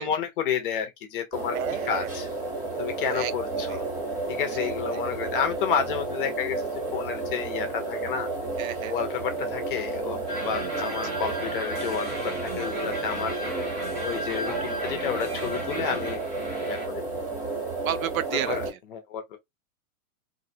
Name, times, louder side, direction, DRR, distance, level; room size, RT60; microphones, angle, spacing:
voice 1, 0.0-2.3 2.8-3.9 4.4-8.3 8.9-13.3 14.0-16.2 16.6-17.0 18.5-19.4, left 7 dB, 40° left, 0.7 m, -31 dB
sound 1, 1.3-18.7, right 3 dB, 30° right, 2.1 m, -32 dB
voice 2, 1.5-2.1 3.1-3.3 3.7-3.8 4.6-5.0 8.6-8.9 10.8-11.0 17.8-18.6, right 11 dB, 70° right, 0.6 m, -31 dB
sound 2, 10.3-16.9, equal, 15° right, 0.8 m, -35 dB
3.0 x 2.6 x 2.7 m
supercardioid pair, 175°, 43 cm